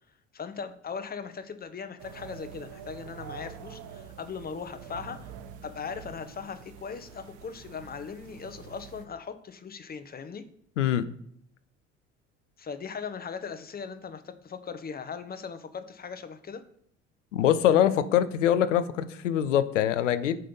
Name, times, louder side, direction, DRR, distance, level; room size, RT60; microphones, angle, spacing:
voice 1, 0.3-5.3 5.6-10.4 12.6-16.6, left 6 dB, 25° left, 9 dB, 0.8 m, -39 dB
sound 1, 2.0-9.1, right 8 dB, 55° right, 0.8 m, -46 dB
voice 2, 10.8-11.1 17.3-20.4, left 10 dB, 85° left, 13 dB, 0.6 m, -23 dB
7.7 x 3.3 x 5.4 m, 0.65 s
hypercardioid pair, 60°, 36 cm